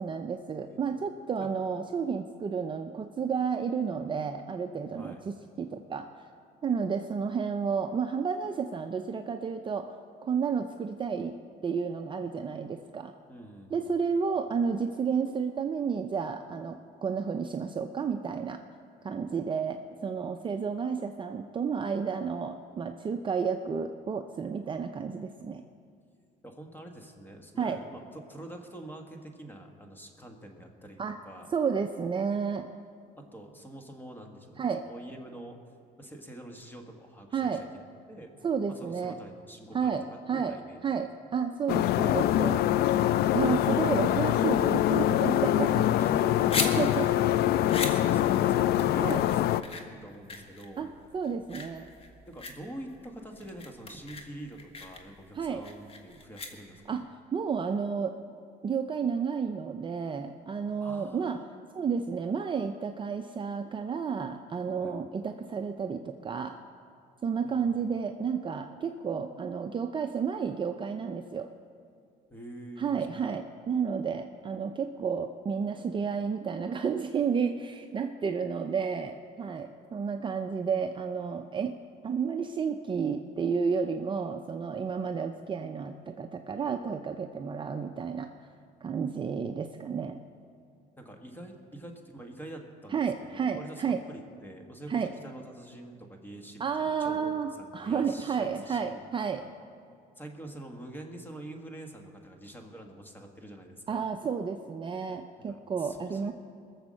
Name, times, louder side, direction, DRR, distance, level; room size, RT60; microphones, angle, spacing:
voice 1, 0.0-6.1 6.6-10.0 10.2-13.1 13.7-18.6 19.0-25.6 27.6-27.8 31.0-31.2 31.5-32.7 34.6-34.8 37.3-37.6 38.4-39.2 39.7-40.6 40.8-42.6 43.3-45.9 46.8-47.1 49.0-49.2 50.8-51.9 55.4-55.6 56.9-57.0 57.3-58.1 58.6-61.4 61.7-66.6 67.2-71.5 72.8-81.7 82.0-88.3 88.8-90.2 92.9-94.0 94.9-95.1 96.6-99.4 103.9-106.3, right 6 dB, 30° right, 5 dB, 0.5 m, -31 dB
voice 2, 13.3-13.8 26.4-31.5 33.2-35.6 36.0-38.3 38.7-40.0 40.3-40.9 43.0-44.1 45.8-46.6 47.5-50.9 52.3-57.0 60.8-61.4 64.8-65.1 67.4-67.7 72.3-72.9 91.0-93.0 93.3-99.0 99.4-99.5 100.2-104.0 105.5-106.3, right 1 dB, 10° left, 3 dB, 1.7 m, -46 dB
sound 1, 41.7-49.6, left 12 dB, 70° left, 0.4 m, -24 dB
sound 2, 46.4-57.0, left 3 dB, 35° left, 1.4 m, -39 dB
21.5 x 7.1 x 6.4 m, 2.3 s
cardioid pair, 110°, 17 cm